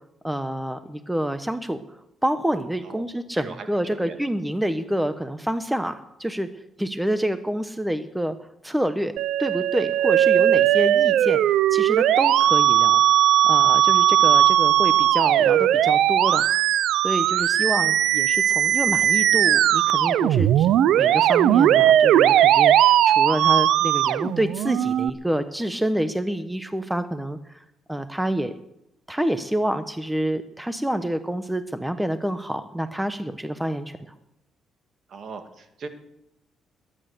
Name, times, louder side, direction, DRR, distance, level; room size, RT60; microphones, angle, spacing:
voice 1, 0.2-6.5 6.8-8.4 8.6-9.1 9.4-13.0 13.4-16.5 17.0-28.5 29.1-34.1, right 1 dB, 5° right, 10 dB, 1.0 m, -28 dB
voice 2, 3.3-3.7 3.9-4.2 14.2-14.4 17.7-17.9 35.1-35.9, right 4 dB, 55° right, 7 dB, 2.2 m, -39 dB
Musical instrument, 9.2-25.1, right 11 dB, 80° right, 0.6 m, -18 dB
21.0 x 10.0 x 6.7 m, 0.84 s
cardioid pair, 90°, 0 cm